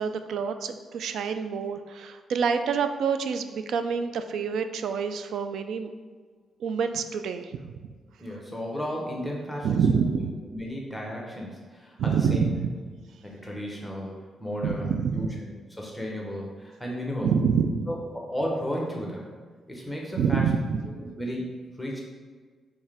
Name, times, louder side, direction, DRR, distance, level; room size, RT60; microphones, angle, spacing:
voice 1, 0.0-5.9 6.6-7.7 9.6-10.3 12.0-12.7 14.6-15.3 17.2-17.9 20.2-20.8, right 6 dB, 75° right, 9 dB, 0.3 m, -27 dB
voice 2, 8.2-10.2 10.5-12.5 13.2-17.3 17.9-19.3 19.7-20.5 20.9-22.0, equal, 5° left, -2 dB, 1.0 m, -34 dB
4.6 x 3.2 x 3.4 m, 1.5 s
cardioid pair, 100°, 0 cm